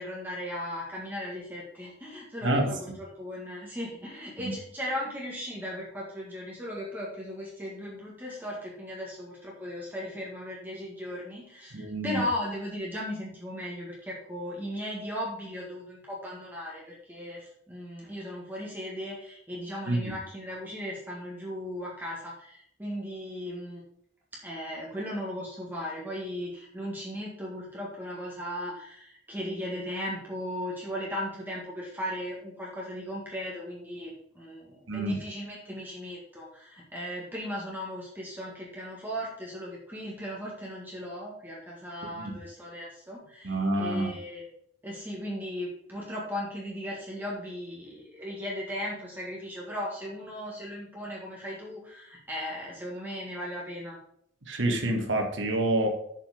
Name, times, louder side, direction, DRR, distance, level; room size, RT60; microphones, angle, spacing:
voice 1, 0.0-23.8 24.3-44.5 44.8-54.0, equal, 10° right, -4 dB, 1.8 m, -37 dB
voice 2, 2.4-2.8 11.7-12.2 19.9-20.1 34.9-35.2 42.1-42.3 43.4-44.1 54.4-55.9, right 1 dB, 85° right, 3 dB, 1.6 m, -27 dB
7.0 x 6.1 x 5.0 m, 0.68 s
head